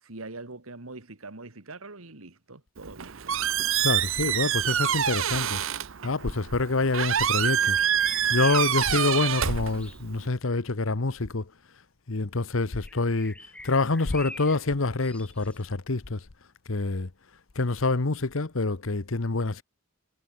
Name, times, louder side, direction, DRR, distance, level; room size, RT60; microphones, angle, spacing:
voice 1, 0.0-3.2 8.9-9.0, right 3 dB, 90° right, 2.2 m, -43 dB
Squeak, 2.8-10.3, right 9 dB, 65° right, 0.9 m, -27 dB
voice 2, 3.8-5.6 6.0-7.8 8.3-11.5 12.1-13.3 13.6-16.2 16.7-17.1 17.5-19.6, left 3 dB, 70° left, 1.1 m, -26 dB
sound 1, 4.8-5.4 7.6-10.0 12.8-14.6 15.0-15.6, left 1 dB, 5° left, 4.5 m, -46 dB
head